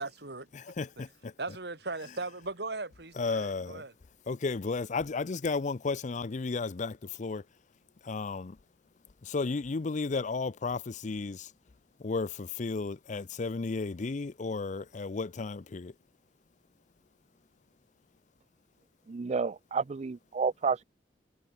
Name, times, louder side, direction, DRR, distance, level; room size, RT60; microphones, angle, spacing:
voice 1, 0.0-0.5 1.4-3.9, right 3 dB, 65° right, 2.8 m, -38 dB
voice 2, 0.5-1.3 3.2-3.8 4.3-7.4 8.0-8.6 9.2-11.5 12.0-15.9, left 4 dB, 45° left, 0.5 m, -33 dB
voice 3, 19.1-20.8, right 5 dB, 40° right, 0.4 m, -30 dB
head